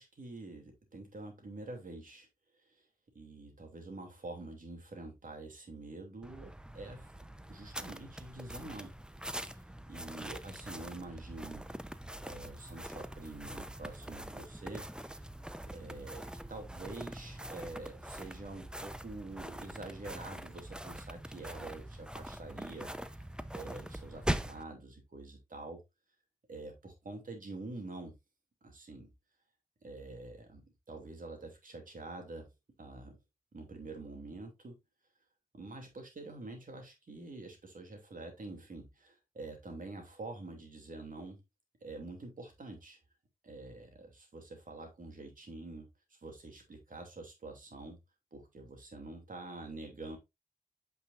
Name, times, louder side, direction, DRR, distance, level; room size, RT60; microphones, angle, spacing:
voice 1, 0.0-2.3 3.1-7.1 7.4-8.9 9.5-9.6 9.9-11.7 12.2-15.3 15.7-23.1 23.5-25.8 26.5-28.1 28.6-29.1 29.8-32.5 32.8-33.2 33.5-34.8 35.5-41.4 41.8-43.0 43.4-45.9 46.2-48.0 48.3-50.2, right 2 dB, 70° right, 3 dB, 2.9 m, -46 dB
sound 1, 6.2-24.6, right 1 dB, 5° right, 0.8 m, -43 dB
8.4 x 5.5 x 2.6 m, 0.21 s
cardioid pair, 45°, 15 cm